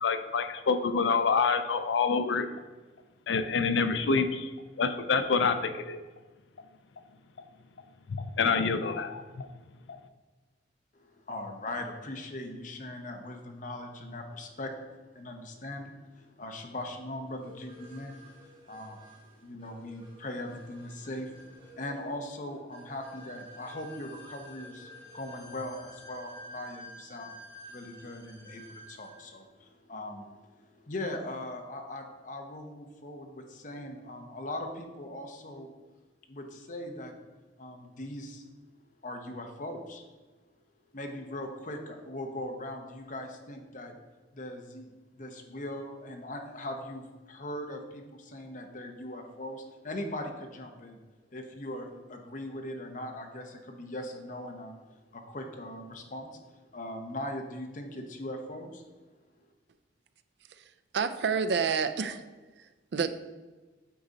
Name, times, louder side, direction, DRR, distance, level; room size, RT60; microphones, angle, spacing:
voice 1, 0.0-2.5 3.3-4.5 4.8-6.0 8.1-9.5 9.9-10.0, left 5 dB, 85° left, 9 dB, 0.5 m, -27 dB
voice 2, 10.9-27.4 27.7-35.7 36.3-37.1 37.6-38.5 39.0-40.0 40.9-43.9 44.3-51.0 51.3-58.8, left 1 dB, 45° left, 4 dB, 0.9 m, -40 dB
sound 1, 17.4-29.3, equal, 30° right, 1.7 m, -51 dB
voice 3, 60.6-62.2 62.6-63.1, right 6 dB, 65° right, 10 dB, 0.4 m, -29 dB
8.5 x 4.0 x 4.0 m, 1.3 s
head